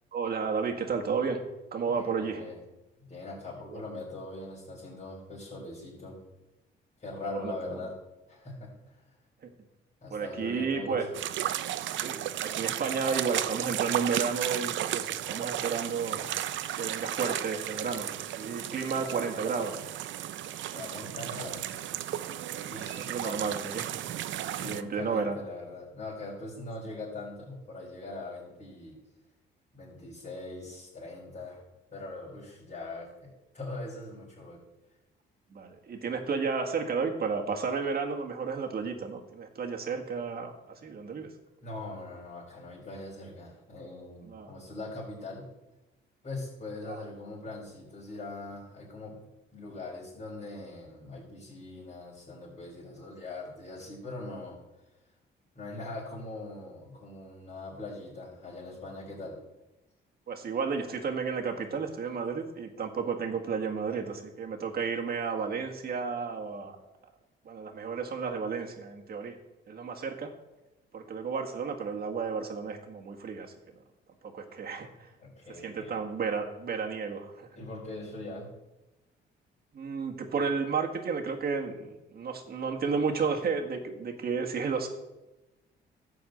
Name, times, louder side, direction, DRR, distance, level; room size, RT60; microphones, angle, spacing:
voice 1, 0.1-1.4 1.7-2.4 3.7-3.8 7.2-7.8 10.1-11.1 12.0-16.3 16.7-18.1 18.4-19.8 22.5-25.4 35.5-41.3 44.3-44.5 46.9-47.0 60.3-66.8 67.4-69.4 69.7-70.3 70.9-73.5 74.3-75.1 75.6-77.5 79.7-84.9, right 5 dB, 50° right, 3 dB, 1.7 m, -32 dB
voice 2, 1.9-2.6 3.0-6.2 7.0-7.9 8.3-9.0 10.0-11.2 20.4-21.9 22.7-23.5 24.3-29.0 29.7-31.6 31.9-34.6 41.6-45.4 46.2-49.2 49.5-54.6 55.5-59.4 75.2-76.0 77.6-78.5, left 2 dB, 40° left, -8 dB, 4.4 m, -41 dB
sound 1, 11.1-24.8, right 12 dB, 70° right, 0.5 m, -34 dB
11.5 x 4.7 x 7.8 m, 1.0 s
cardioid pair, 90°, 20 cm